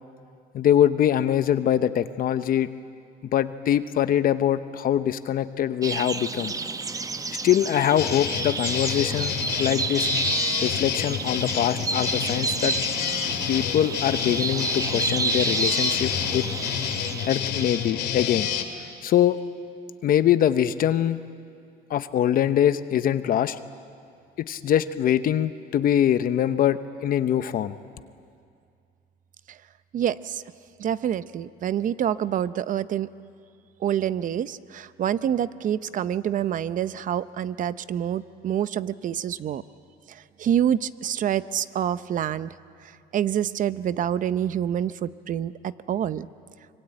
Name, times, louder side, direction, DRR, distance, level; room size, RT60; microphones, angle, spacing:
voice 1, 0.5-2.7 3.2-6.5 7.4-10.1 10.6-12.8 13.5-16.5 17.3-18.5 19.0-19.4 20.0-21.2 21.9-23.6 24.4-27.8, left 10 dB, 60° left, 12 dB, 0.9 m, -23 dB
sound 1, 5.8-17.9, right 3 dB, 20° right, 0.9 m, -30 dB
sound 2, 8.0-18.6, left 9 dB, 80° left, 2.3 m, -29 dB
voice 2, 29.9-30.4 30.8-33.1 33.8-39.6 40.1-42.5 42.8-46.3, right 10 dB, 50° right, 15 dB, 0.7 m, -27 dB
25.0 x 24.0 x 9.0 m, 2.3 s
cardioid pair, 110°, 17 cm